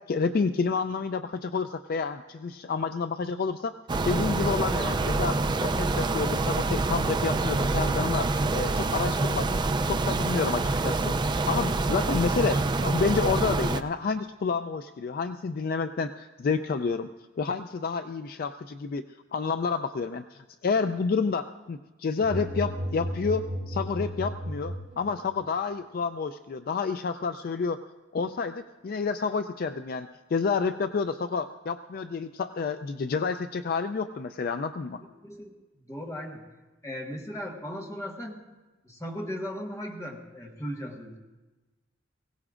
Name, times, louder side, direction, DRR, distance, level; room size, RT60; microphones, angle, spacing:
voice 1, 0.1-3.7 4.1-9.6 9.9-17.1 17.4-19.1 19.3-27.8 28.1-35.0, left 5 dB, 50° left, 10 dB, 0.4 m, -29 dB
sound 1, 3.9-13.8, right 3 dB, 25° right, 0.4 m, -26 dB
sound 2, 22.2-25.5, equal, 40° right, 3.5 m, -34 dB
voice 2, 35.0-36.4 36.8-38.5 38.8-41.2, equal, 15° left, 0 dB, 1.4 m, -37 dB
21.5 x 17.0 x 2.5 m, 1.2 s
head